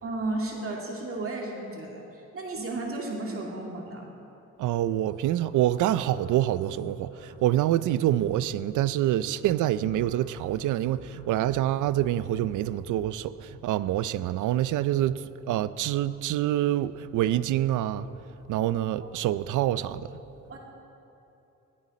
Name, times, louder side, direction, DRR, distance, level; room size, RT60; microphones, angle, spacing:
voice 1, 0.0-4.1 19.0-19.1 20.5-20.6, right 2 dB, 45° right, 2.3 m, -34 dB
voice 2, 4.6-18.1 18.5-20.1, right 13 dB, 80° right, 0.6 m, -26 dB
sound 1, 5.1-8.4 9.1-12.9, left 3 dB, 55° left, 3.3 m, -54 dB
19.5 x 14.5 x 4.2 m
cardioid pair, 90°, 30 cm